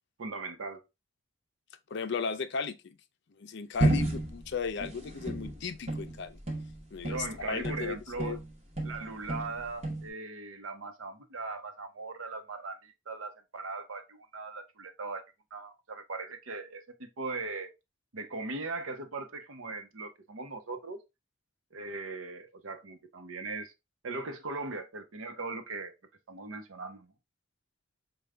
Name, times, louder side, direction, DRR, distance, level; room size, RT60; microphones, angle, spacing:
voice 1, 0.2-0.8 7.0-8.4 8.8-15.2 15.5-16.8 17.2-17.7 18.1-21.0 21.7-23.7 24.0-25.9 26.3-27.1, right 3 dB, 90° right, 0.8 m, -39 dB
voice 2, 1.9-3.0 3.4-6.4 6.9-8.4, left 5 dB, 60° left, 0.5 m, -36 dB
sound 1, 3.8-8.5 8.8-10.1, right 1 dB, 35° right, 0.9 m, -31 dB
4.9 x 2.3 x 3.2 m
head